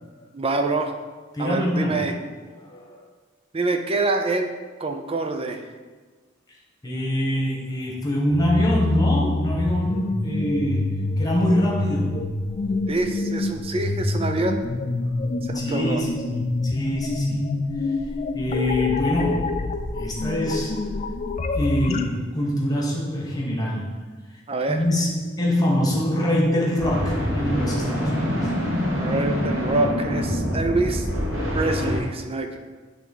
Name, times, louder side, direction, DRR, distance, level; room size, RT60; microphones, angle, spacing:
voice 1, 0.3-0.9 1.4-2.2 3.5-4.5 4.8-5.6 12.9-14.6 15.4-16.0 24.5-24.8 29.0-31.1 31.5-32.6, right 2 dB, 30° right, 5 dB, 0.6 m, -25 dB
voice 2, 1.3-2.0 2.5-3.0 6.8-12.2 15.0-15.1 15.5-17.4 18.3-19.6 19.9-20.8 21.5-23.9 24.7-28.5, left 1 dB, 20° left, -2 dB, 1.4 m, -24 dB
sound 1, 8.3-22.0, left 2 dB, 35° left, 0.4 m, -26 dB
sound 2, 26.8-32.0, equal, 80° right, 1.7 m, -25 dB
8.0 x 3.6 x 5.5 m, 1.4 s
head